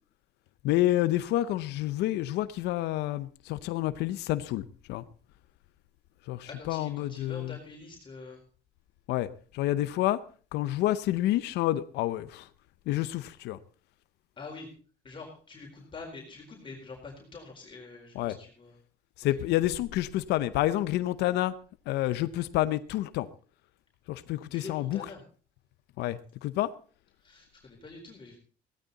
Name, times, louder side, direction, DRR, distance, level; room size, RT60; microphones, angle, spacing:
voice 1, 0.6-5.0 6.3-7.6 9.1-9.3 9.5-10.2 10.5-12.5 12.9-13.6 18.1-18.4 19.2-21.5 21.9-23.3 24.1-25.1 26.0-26.7, left 15 dB, 85° left, 14 dB, 0.7 m, -29 dB
voice 2, 6.5-8.4 14.4-14.7 15.0-18.8 24.4-25.2 27.2-28.4, left 3 dB, 30° left, 0 dB, 4.2 m, -45 dB
16.0 x 13.0 x 4.1 m, 0.40 s
cardioid pair, 110°, 17 cm